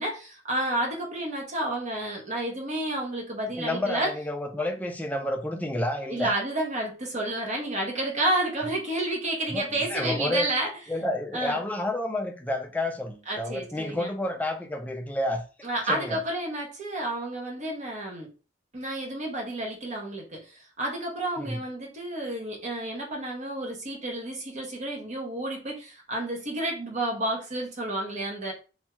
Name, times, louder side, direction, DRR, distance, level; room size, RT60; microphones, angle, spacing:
voice 1, 0.0-4.1 6.1-10.7 11.3-11.6 13.3-14.1 15.6-18.3 18.7-28.5, right 1 dB, 40° right, 0.8 m, -30 dB
voice 2, 3.6-6.3 9.5-10.5 10.9-15.4 15.9-16.2 21.4-21.6, left 1 dB, 10° left, 0.4 m, -30 dB
2.6 x 2.2 x 2.9 m
head